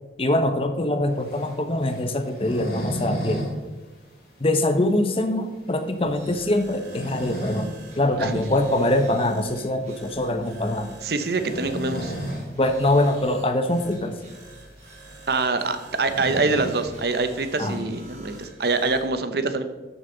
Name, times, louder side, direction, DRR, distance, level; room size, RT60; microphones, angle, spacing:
voice 1, 0.2-3.4 4.4-11.0 12.6-14.2 17.6-17.9, left 1 dB, 30° left, 8 dB, 0.8 m, -23 dB
sound 1, 1.2-3.5 3.8-3.9 4.3-4.4 4.9-5.0 6.6-7.7 8.1-8.3 9.8-10.0 11.2-12.5 12.9-13.0 13.2-13.3 14.0-14.1 14.4-17.0, equal, 60° left, 2.9 m, -33 dB
sound 2, 6.0-19.1, right 1 dB, 40° right, 3.3 m, -46 dB
voice 2, 11.0-12.1 15.3-19.6, right 3 dB, 60° right, 9 dB, 0.8 m, -25 dB
12.5 x 6.8 x 3.9 m, 1.2 s
head